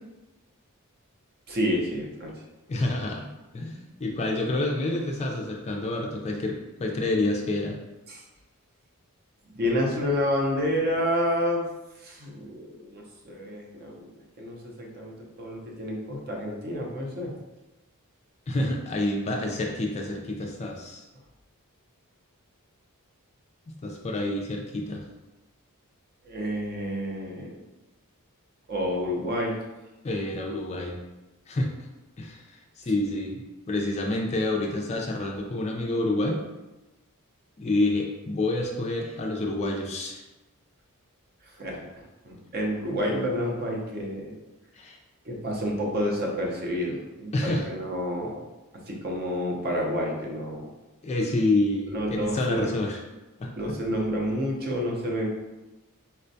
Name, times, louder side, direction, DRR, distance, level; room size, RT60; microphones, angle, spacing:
voice 1, 1.5-2.3 8.1-8.2 9.6-11.6 12.0-14.1 14.4-17.3 26.2-27.6 28.7-29.6 41.6-44.3 45.2-48.4 48.9-50.7 51.9-52.8 53.6-55.3, equal, 45° right, -1 dB, 0.6 m, -29 dB
voice 2, 2.7-7.8 18.5-21.0 23.8-25.0 30.0-31.0 31.5-31.7 32.2-33.4 33.7-36.4 37.6-40.2 44.8-45.0 47.3-47.7 51.0-53.0 53.4-53.5, left 2 dB, 30° left, 1 dB, 0.3 m, -28 dB
4.2 x 2.2 x 2.6 m, 1.0 s
head